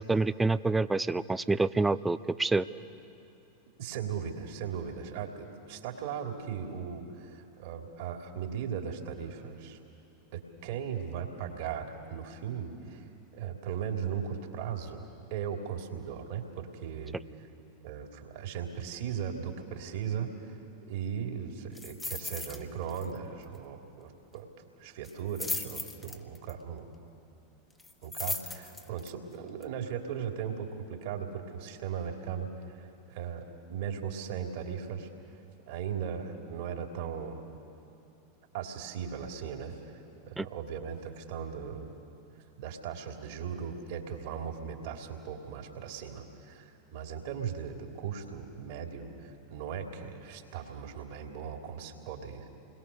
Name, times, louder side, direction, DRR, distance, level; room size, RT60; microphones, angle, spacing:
voice 1, 0.0-2.7 40.4-40.5, right 3 dB, 10° right, 15 dB, 0.7 m, -27 dB
voice 2, 3.8-9.8 10.3-13.1 13.3-17.2 17.8-20.6 20.9-24.5 24.8-26.9 28.0-35.1 35.7-37.4 38.5-39.9 40.2-41.9 42.6-52.5, right 7 dB, 55° right, 3 dB, 3.0 m, -38 dB
sound 1, 21.8-22.6 22.9-23.2 23.4-23.5 25.0-26.5 27.8-29.1 29.6-29.7, left 3 dB, 15° left, 1.7 m, -37 dB
29.0 x 21.5 x 6.9 m, 2.8 s
figure-of-eight pair, 90°, 0 cm